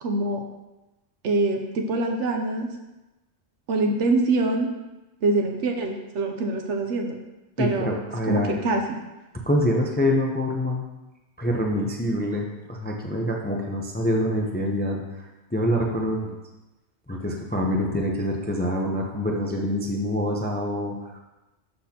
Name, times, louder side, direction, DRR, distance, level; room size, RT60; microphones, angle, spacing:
voice 1, 0.0-0.4 1.2-2.7 3.7-4.7 5.2-7.2 7.6-7.9 8.2-9.0, right 2 dB, 75° right, 3 dB, 1.0 m, -24 dB
voice 2, 7.6-8.6 9.5-10.8 11.4-16.4 17.1-21.2, equal, 15° left, 1 dB, 0.4 m, -26 dB
11.5 x 4.2 x 2.8 m, 1.0 s
omnidirectional pair, 1.2 m